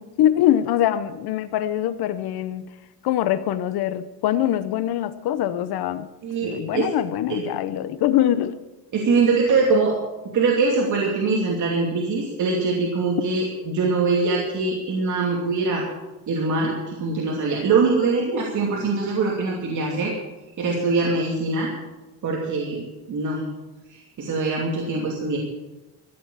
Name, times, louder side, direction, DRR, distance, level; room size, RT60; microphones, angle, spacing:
voice 1, 0.0-2.7 3.0-6.1 6.4-8.6, left 12 dB, 70° left, 13 dB, 0.9 m, -23 dB
voice 2, 6.2-6.9 7.3-7.4 8.9-10.0 10.3-15.8 16.3-20.1 20.6-21.7 22.2-22.8 23.1-23.4 23.9-25.4, right 4 dB, 50° right, -2 dB, 2.7 m, -23 dB
14.5 x 9.6 x 7.2 m, 1.1 s
cardioid pair, 140°, 39 cm